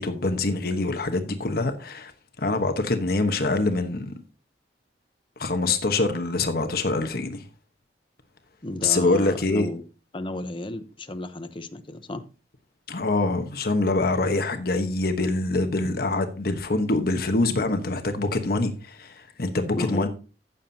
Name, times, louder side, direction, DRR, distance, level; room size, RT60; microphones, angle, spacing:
voice 1, 0.0-2.1 2.4-4.1 5.4-7.4 8.8-9.7 12.9-20.1, left 2 dB, 60° left, 1.2 m, -25 dB
voice 2, 8.6-9.8 10.1-12.2 19.7-20.1, left 1 dB, 30° left, 0.9 m, -33 dB
15.0 x 7.1 x 2.8 m
head